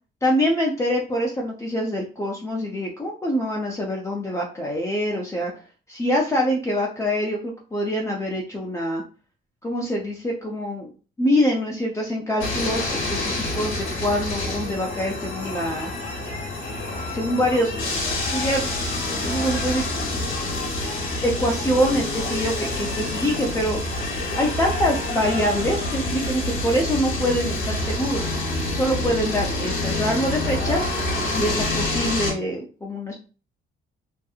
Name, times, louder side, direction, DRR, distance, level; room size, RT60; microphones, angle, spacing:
voice 1, 0.2-5.5 5.9-9.0 9.6-10.9 11.2-15.9 16.7-17.9 18.3-18.7 19.1-20.2 21.2-23.8 24.3-28.3 28.7-30.9 31.3-33.2, equal, 15° left, -1 dB, 0.5 m, -25 dB
sound 1, 12.4-32.3, left 2 dB, 70° left, 1.0 m, -27 dB
2.7 x 2.5 x 2.3 m, 0.36 s
cardioid pair, 90°, 20 cm